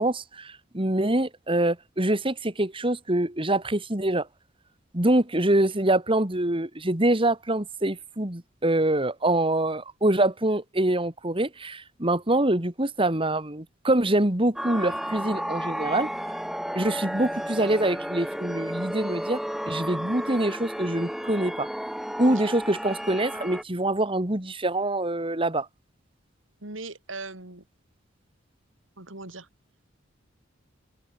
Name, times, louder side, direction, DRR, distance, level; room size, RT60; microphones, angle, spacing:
voice 1, 0.0-4.3 4.9-16.1 16.7-19.4 19.7-21.7 22.2-25.7, right 1 dB, 25° right, 2.6 m, -25 dB
sound 1, 14.6-23.6, equal, ahead, 6.1 m, -33 dB
voice 2, 22.2-22.5 26.6-27.6 29.0-29.5, right 3 dB, 80° right, 4.3 m, -39 dB
head